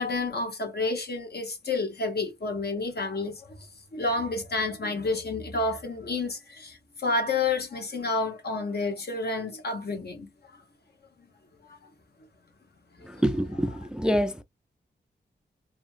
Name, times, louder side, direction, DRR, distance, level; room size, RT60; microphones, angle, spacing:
voice 1, 0.0-3.5 3.9-10.3 13.7-13.8, left 3 dB, 60° left, 1.0 m, -30 dB
voice 2, 13.2-14.4, equal, 5° right, 0.3 m, -26 dB
2.7 x 2.7 x 2.5 m
cardioid pair, 65°, 19 cm